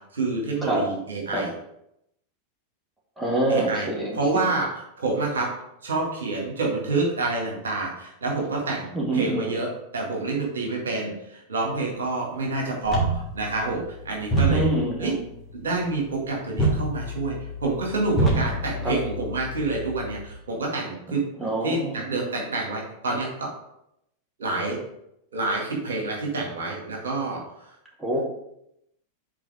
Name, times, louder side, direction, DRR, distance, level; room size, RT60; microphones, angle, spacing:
voice 1, 0.1-1.5 3.5-3.9 4.1-5.5 5.8-9.7 9.9-14.6 15.0-15.1 15.5-17.4 17.6-21.3 21.6-23.5 24.4-24.8 25.3-27.7, right 3 dB, 65° right, -1 dB, 1.9 m, -28 dB
voice 2, 3.2-4.5 8.9-9.5 14.5-15.1 18.8-18.9 21.4-22.0 28.0-28.2, right 1 dB, 5° right, -4 dB, 1.8 m, -26 dB
sound 1, 12.8-20.2, right 2 dB, 10° left, 2.5 m, -28 dB
6.1 x 4.2 x 4.9 m, 0.79 s
figure-of-eight pair, 90°, 0 cm